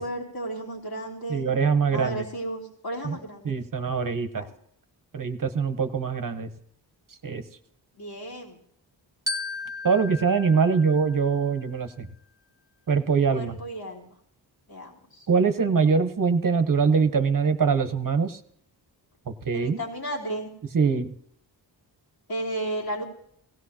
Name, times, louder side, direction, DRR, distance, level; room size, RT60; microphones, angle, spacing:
voice 1, 0.0-1.4 1.9-3.5 4.3-4.5 8.0-8.6 13.3-14.1 14.7-15.3 19.5-20.5 22.3-23.0, right 1 dB, 55° left, -1 dB, 3.3 m, -33 dB
voice 2, 1.3-2.2 3.0-3.2 3.4-4.5 5.1-6.5 7.2-7.4 9.8-12.1 12.9-13.6 15.3-18.4 19.3-19.8 20.7-21.1, right 5 dB, 45° right, 9 dB, 1.2 m, -23 dB
Glockenspiel, 9.3-11.7, left 2 dB, 10° right, 1.3 m, -35 dB
17.5 x 16.0 x 2.9 m, 0.71 s
cardioid pair, 65°, 44 cm